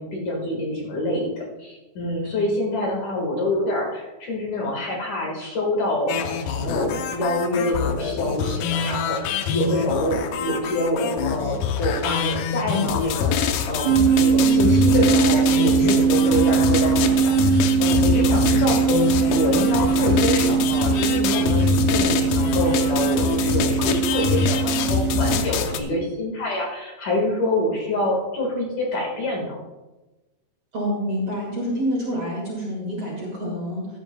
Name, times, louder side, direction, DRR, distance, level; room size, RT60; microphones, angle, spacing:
voice 1, 0.0-29.6, left 1 dB, 55° left, -1 dB, 2.7 m, -26 dB
sound 1, 6.1-25.8, left 6 dB, 85° left, 1.9 m, -24 dB
sound 2, 13.9-25.4, right 7 dB, 80° right, 2.7 m, -21 dB
voice 2, 30.7-33.9, equal, 45° right, -3 dB, 2.3 m, -27 dB
15.5 x 10.5 x 2.2 m, 1.1 s
omnidirectional pair, 4.9 m